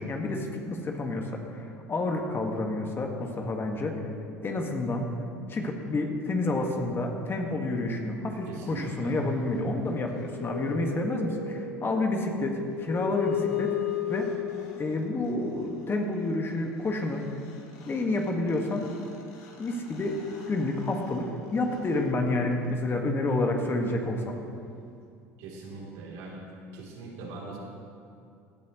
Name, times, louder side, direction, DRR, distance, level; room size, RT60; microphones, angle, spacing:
voice 1, 0.0-4.0 4.4-5.1 5.5-13.7 14.1-14.3 14.8-17.2 17.9-18.9 19.6-20.2 20.5-24.4, left 2 dB, 30° left, 2 dB, 1.8 m, -29 dB
voice 2, 8.5-9.2 25.4-26.4 26.7-27.6, right 3 dB, 65° right, -3 dB, 3.4 m, -41 dB
sound 1, 9.9-15.3 17.2-17.3 17.4-22.9, left 10 dB, 60° left, 2.8 m, -37 dB
17.5 x 12.5 x 3.2 m, 2.5 s
hypercardioid pair, 75°, 8 cm